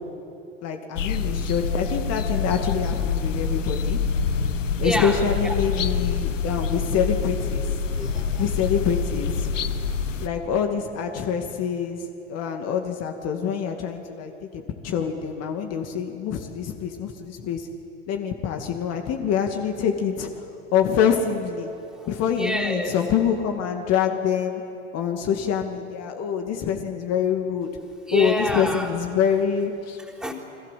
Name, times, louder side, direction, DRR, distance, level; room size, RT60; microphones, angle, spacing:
voice 1, 0.6-4.0 4.8-7.6 8.4-9.5 10.2-17.7 18.1-20.4 20.7-21.7 22.1-24.6 24.9-27.7 28.1-30.0, left 7 dB, 40° left, 4 dB, 2.5 m, -25 dB
sound 1, 1.0-10.3, left 5 dB, 80° left, 1.4 m, -26 dB
voice 2, 4.8-5.2 7.9-8.5 22.0-22.1 22.4-22.9 28.1-28.9 30.0-30.3, equal, ahead, 1 dB, 4.1 m, -27 dB
29.5 x 22.5 x 7.7 m, 2.7 s
hypercardioid pair, 90°, 37 cm